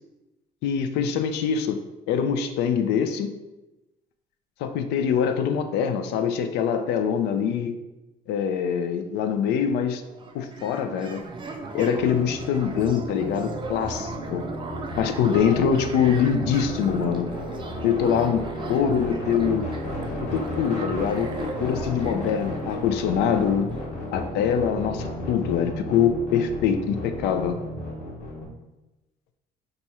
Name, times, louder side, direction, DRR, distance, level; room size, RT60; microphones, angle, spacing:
voice 1, 0.6-1.8 2.1-3.3 4.6-7.7 8.3-10.0 10.3-11.2 11.7-14.4 15.0-17.3 17.8-19.7 20.2-21.3 21.6-23.7 24.1-27.6, left 7 dB, 85° left, 8 dB, 0.4 m, -24 dB
sound 1, 10.0-24.6, right 3 dB, 30° right, 0.4 m, -37 dB
sound 2, 12.0-28.5, left 1 dB, 45° left, 1.1 m, -34 dB
2.9 x 2.4 x 4.1 m, 1.0 s
cardioid pair, 110°, 17 cm